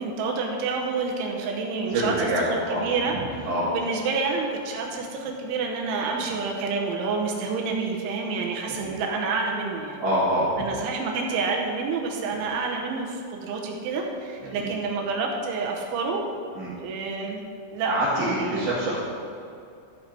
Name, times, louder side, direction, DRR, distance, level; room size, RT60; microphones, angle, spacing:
voice 1, 0.0-2.1 2.8-3.1 3.7-10.0 10.6-16.2 16.8-17.4 17.7-18.7, right 4 dB, 80° right, 0 dB, 3.2 m, -28 dB
voice 2, 1.9-2.8 3.1-3.7 6.2-6.3 8.7-9.0 10.0-10.7 14.4-14.7 16.5-16.7 17.9-19.0, right 1 dB, 50° right, -10 dB, 4.0 m, -26 dB
13.5 x 5.7 x 5.7 m, 2.4 s
omnidirectional pair, 5.8 m